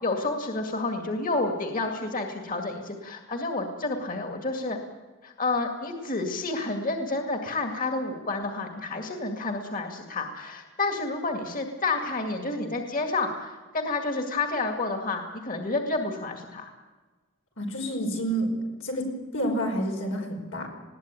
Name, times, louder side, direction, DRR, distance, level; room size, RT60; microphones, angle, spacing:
voice 1, 0.0-4.8 5.2-16.7, left 3 dB, 45° left, 4 dB, 2.1 m, -30 dB
voice 2, 17.6-18.5 18.8-19.1 19.3-20.7, right 1 dB, 90° left, 1 dB, 5.3 m, -29 dB
20.5 x 16.5 x 9.1 m, 1.3 s
head